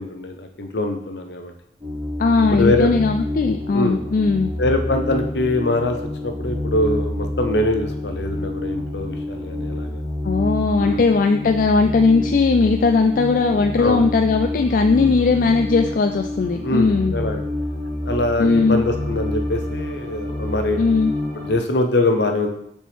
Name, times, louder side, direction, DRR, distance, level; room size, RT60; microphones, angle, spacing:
voice 1, 0.0-1.5 2.5-2.9 3.7-4.0 4.6-6.0 6.2-10.0 10.7-11.0 13.8-14.0 16.6-17.4 18.1-20.8 21.3-22.5, left 2 dB, 70° left, 4 dB, 0.8 m, -23 dB
sound 1, 1.8-21.6, left 1 dB, 15° right, 2.2 m, -28 dB
voice 2, 2.2-4.5 10.2-17.1 18.4-18.8 20.8-21.1, left 4 dB, 50° left, 5 dB, 0.3 m, -18 dB
7.3 x 4.4 x 3.6 m, 0.72 s
head